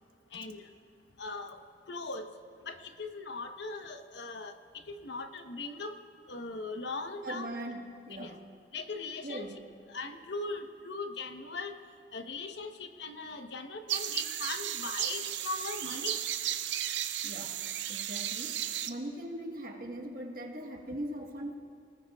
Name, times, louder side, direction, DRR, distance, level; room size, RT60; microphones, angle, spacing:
voice 1, 0.3-0.7 1.2-1.6 1.9-2.3 2.6-4.6 4.9-6.0 6.3-7.5 8.2-8.4 8.7-9.5 9.9-11.8 12.1-16.2, left 3 dB, 75° left, 6 dB, 1.0 m, -39 dB
voice 2, 7.2-8.5 9.2-9.7 17.2-21.6, right 1 dB, 50° right, 1 dB, 1.5 m, -41 dB
sound 1, 13.9-18.9, right 11 dB, 80° right, 0.6 m, -34 dB
29.0 x 19.5 x 2.4 m, 2.2 s
head